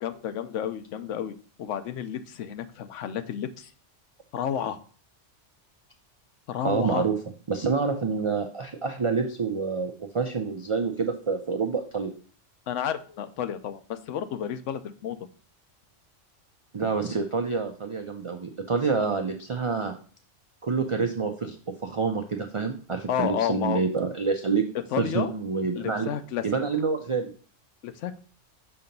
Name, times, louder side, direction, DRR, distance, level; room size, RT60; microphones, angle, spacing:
voice 1, 0.0-3.7 4.3-4.8 6.5-7.1 12.7-15.2 23.1-23.8 24.7-25.3 25.8-26.5 27.8-28.2, left 9 dB, 90° left, 10 dB, 0.9 m, -31 dB
voice 2, 6.6-7.1 7.5-12.1 16.7-19.9 20.6-21.6 21.8-24.7 25.0-26.1 26.4-27.3, right 4 dB, 45° right, 4 dB, 0.4 m, -27 dB
6.7 x 2.9 x 5.2 m, 0.41 s
omnidirectional pair, 1.2 m